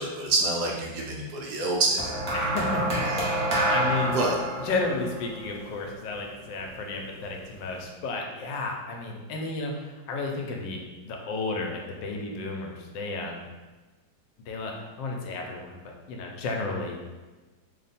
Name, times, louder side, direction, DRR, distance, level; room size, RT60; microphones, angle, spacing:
voice 1, 0.0-2.1 3.0-3.1 4.1-4.4, right 3 dB, 75° right, -1 dB, 1.1 m, -27 dB
sound 1, 2.0-6.4 7.3-7.6, right 1 dB, 90° right, 0.4 m, -28 dB
voice 2, 2.3-4.2 4.6-13.5 14.5-17.1, left 3 dB, 80° left, 1 dB, 1.2 m, -33 dB
3.1 x 2.2 x 4.1 m, 1.2 s
omnidirectional pair, 2.0 m